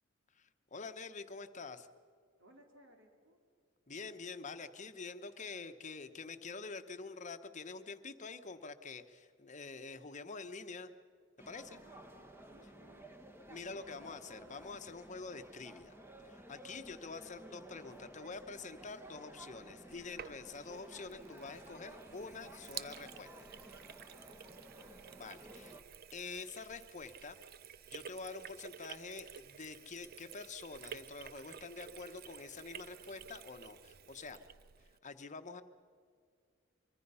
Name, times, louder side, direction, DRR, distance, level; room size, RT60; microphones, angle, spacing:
voice 1, 0.3-1.9 3.9-10.9 11.4-11.8 13.5-15.9 16.2-23.3 25.1-25.8 26.1-27.4 27.9-34.4 35.0-35.6, left 4 dB, 40° left, 9 dB, 1.1 m, -47 dB
voice 2, 2.4-3.4 11.8-13.2 24.3-24.6, right 1 dB, 70° right, 3 dB, 2.9 m, -64 dB
sound 1, 11.4-25.8, right 1 dB, 10° right, 1.6 m, -54 dB
Sink (filling or washing), 19.9-35.0, right 8 dB, 50° right, 0.6 m, -52 dB
24.5 x 24.0 x 5.7 m, 2.2 s
head